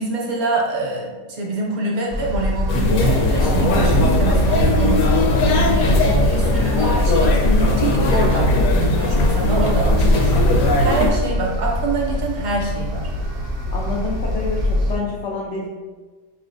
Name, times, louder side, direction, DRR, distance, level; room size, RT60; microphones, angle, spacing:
voice 1, 0.0-13.1, right 3 dB, 65° right, -2 dB, 1.1 m, -25 dB
sound 1, 2.1-15.0, left 1 dB, 80° right, 0.5 m, -25 dB
sound 2, 2.7-11.1, left 2 dB, 70° left, 0.9 m, -18 dB
Thunder, 3.0-9.4 9.8-10.4 10.8-11.6, right 1 dB, 30° left, 0.4 m, -27 dB
voice 2, 13.7-15.7, left 3 dB, 90° left, -4 dB, 0.6 m, -27 dB
4.6 x 3.2 x 2.5 m, 1.4 s
omnidirectional pair, 1.8 m